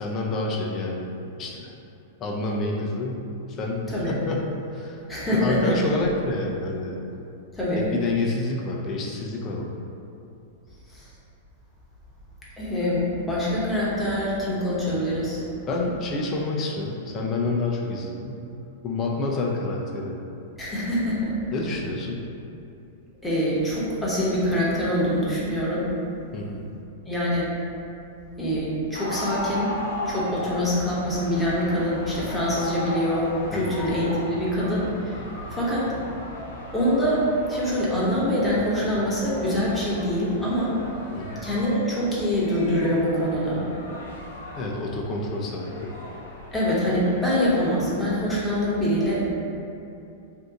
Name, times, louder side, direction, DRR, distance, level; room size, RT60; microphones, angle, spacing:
voice 1, 0.0-1.7 2.2-3.2 3.5-5.0 5.3-7.0 7.7-9.7 15.7-18.4 18.8-20.2 21.5-22.3 26.3-26.7 33.5-33.7 41.1-41.4 44.5-45.7, left 2 dB, 35° left, -2 dB, 0.5 m, -28 dB
voice 2, 5.1-5.7 7.5-7.8 10.9-11.1 12.6-15.5 20.6-21.3 23.2-25.9 27.1-27.5 28.4-29.8 30.1-36.2 36.7-40.8 41.4-43.6 46.5-49.3, equal, 10° left, -8 dB, 1.0 m, -24 dB
sound 1, 28.9-47.8, left 1 dB, 75° left, 0.7 m, -37 dB
2.7 x 2.4 x 3.7 m, 2.7 s
hypercardioid pair, 100°, 0 cm